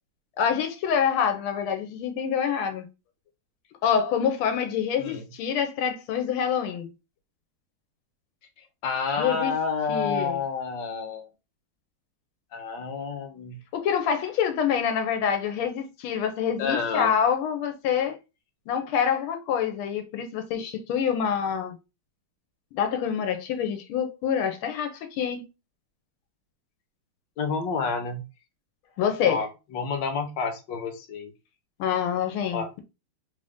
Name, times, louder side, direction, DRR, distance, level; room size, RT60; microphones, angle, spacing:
voice 1, 0.4-2.8 3.8-6.9 9.2-9.5 9.9-10.4 13.7-18.2 18.7-21.8 22.7-25.5 29.0-29.4 31.8-32.8, left 8 dB, 90° left, 1.5 m, -26 dB
voice 2, 8.6-11.3 12.5-13.6 16.6-17.1 27.4-28.2 29.2-31.3 32.5-32.7, left 5 dB, 65° left, 1.4 m, -29 dB
3.8 x 2.6 x 3.5 m
omnidirectional pair, 2.3 m